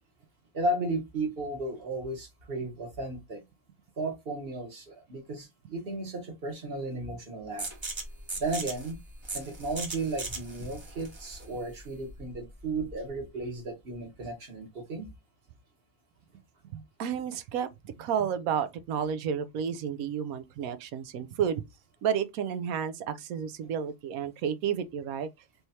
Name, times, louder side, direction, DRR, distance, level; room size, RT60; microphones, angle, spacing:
voice 1, 0.5-3.4 4.0-7.7 8.3-9.0 9.3-15.1, right 2 dB, 45° right, 1.3 m, -34 dB
sound 1, 7.6-13.1, right 3 dB, 25° right, 0.7 m, -39 dB
voice 2, 16.7-21.6 22.0-25.3, right 8 dB, 85° right, 1.0 m, -31 dB
3.4 x 3.1 x 2.7 m
omnidirectional pair, 1.5 m